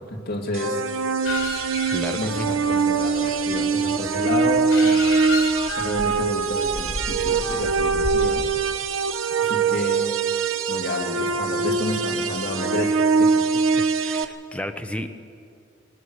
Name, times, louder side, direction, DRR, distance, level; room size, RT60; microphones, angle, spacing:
voice 1, 0.1-0.8 2.1-5.0 5.7-8.4 9.4-10.1 10.7-13.3, left 1 dB, 50° left, 0 dB, 2.9 m, -30 dB
sound 1, 0.5-14.2, right 5 dB, 90° right, 1.1 m, -23 dB
sound 2, 1.2-8.2, left 2 dB, 70° left, 3.7 m, -33 dB
voice 2, 1.9-2.4 13.7-15.1, left 1 dB, 5° left, 6 dB, 0.9 m, -32 dB
21.0 x 19.5 x 6.5 m, 2.5 s
head